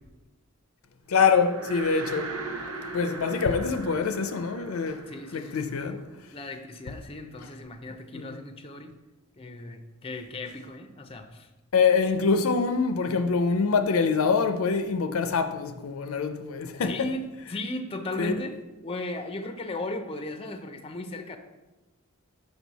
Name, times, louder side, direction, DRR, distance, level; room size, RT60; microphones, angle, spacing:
voice 1, 1.1-2.4 2.9-5.1 5.3-6.0 7.4-7.5 8.1-8.4 11.7-17.1 18.2-18.3, left 5 dB, 80° left, 0.5 m, -25 dB
sound 1, 1.2-6.6, right 3 dB, 90° right, 0.8 m, -39 dB
voice 2, 5.1-6.1 6.3-8.9 9.4-11.5 16.8-17.2 17.5-18.5 18.8-21.4, left 2 dB, 25° left, 0.5 m, -36 dB
6.2 x 5.2 x 4.0 m
head